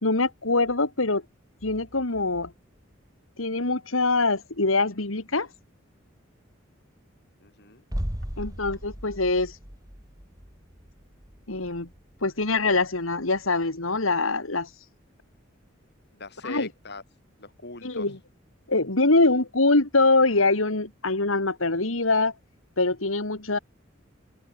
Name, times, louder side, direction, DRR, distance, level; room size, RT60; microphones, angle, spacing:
voice 1, 0.0-1.2 1.6-2.5 3.4-5.5 8.4-9.6 11.5-11.9 12.2-14.7 16.4-16.7 17.8-18.2 18.7-22.3 22.8-23.6, left 3 dB, 90° left, 2.7 m, -24 dB
voice 2, 7.4-7.8 16.1-17.0 17.4-18.1, left 3 dB, 55° left, 6.4 m, -41 dB
sound 1, 7.9-13.6 13.9-14.0, equal, 20° right, 3.5 m, -38 dB
head